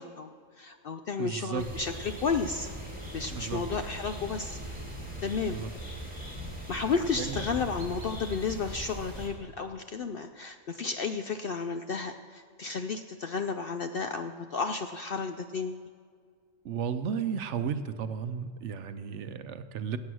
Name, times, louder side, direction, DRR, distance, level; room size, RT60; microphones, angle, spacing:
voice 1, 0.0-2.7 3.1-4.6 5.2-5.6 6.7-15.8, left 5 dB, 65° left, 8 dB, 0.6 m, -32 dB
voice 2, 1.2-1.6 3.3-3.6 5.5-5.7 7.1-7.4 16.6-20.0, right 7 dB, 65° right, 11 dB, 0.9 m, -34 dB
sound 1, 1.6-9.3, right 1 dB, 5° right, 2.6 m, -40 dB
15.5 x 8.6 x 6.2 m, 2.1 s
omnidirectional pair, 1.4 m